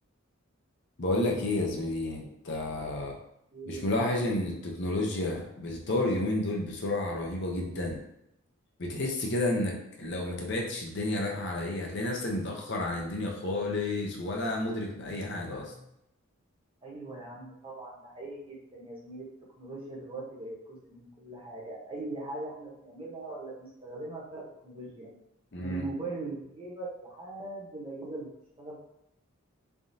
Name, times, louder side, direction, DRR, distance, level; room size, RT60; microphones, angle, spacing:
voice 1, 1.0-3.1 3.7-8.0 8.8-15.7 25.5-25.9, left 2 dB, 50° left, -1 dB, 0.6 m, -31 dB
voice 2, 3.5-4.1 15.1-15.9 16.8-19.2 19.6-25.1 25.6-28.3 28.6-28.8, right 2 dB, 25° right, -4 dB, 0.9 m, -41 dB
3.6 x 3.5 x 2.7 m, 0.79 s
head